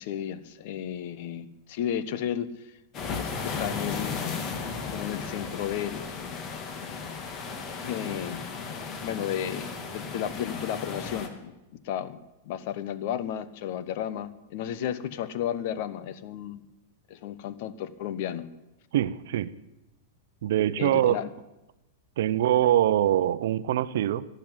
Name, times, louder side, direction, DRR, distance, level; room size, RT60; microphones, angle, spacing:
voice 1, 0.0-2.7 3.2-4.2 4.9-6.0 7.8-8.4 9.0-12.2 12.4-16.6 17.1-18.5 20.8-21.3, left 10 dB, 55° left, 1.1 m, -33 dB
sound 1, 2.9-11.3, left 5 dB, 35° left, 2.4 m, -35 dB
voice 2, 18.9-19.6 20.4-21.2 22.2-24.3, right 12 dB, 65° right, 0.7 m, -23 dB
12.0 x 12.0 x 9.7 m
hypercardioid pair, 110°, 0 cm